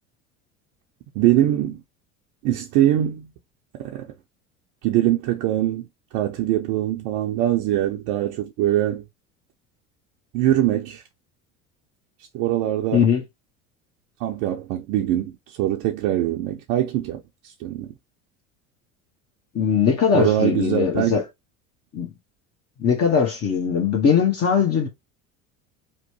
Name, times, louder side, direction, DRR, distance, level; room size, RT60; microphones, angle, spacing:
voice 1, 1.2-1.8 2.4-3.3 3.7-4.1 4.8-5.9 6.1-9.0 10.3-11.0 12.3-13.1 14.2-17.9 20.1-21.2, right 13 dB, 60° right, 0.6 m, -22 dB
voice 2, 19.5-21.2 21.9-22.1 22.8-24.9, left 7 dB, 40° left, 0.9 m, -20 dB
3.0 x 2.1 x 3.0 m
hypercardioid pair, 75°, 39 cm